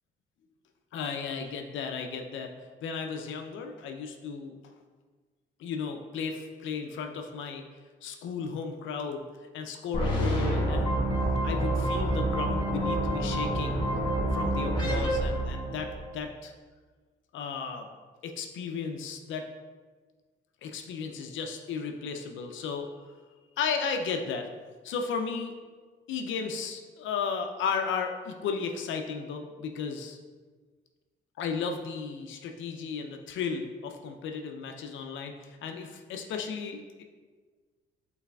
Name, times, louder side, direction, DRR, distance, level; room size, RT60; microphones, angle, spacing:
voice 1, 0.9-2.5 2.8-4.6 5.6-7.6 8.0-9.2 9.5-11.0 11.4-13.8 14.3-16.5 17.3-17.9 18.2-19.4 20.6-22.9 23.6-24.5 24.8-25.5 26.1-30.2 31.4-37.0, left 5 dB, 75° left, 4 dB, 0.5 m, -34 dB
sound 1, 9.9-16.1, right 1 dB, 25° left, 1.3 m, -28 dB
5.6 x 4.0 x 2.3 m, 1.4 s
cardioid pair, 90°, 20 cm